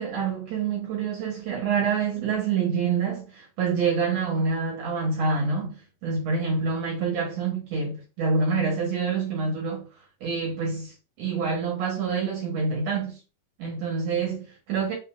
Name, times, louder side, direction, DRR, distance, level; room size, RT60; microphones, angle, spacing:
voice 1, 0.0-9.9 10.2-13.2 13.6-14.9, right 5 dB, 65° right, 2.6 m, -27 dB
5.4 x 3.8 x 2.3 m
omnidirectional pair, 4.1 m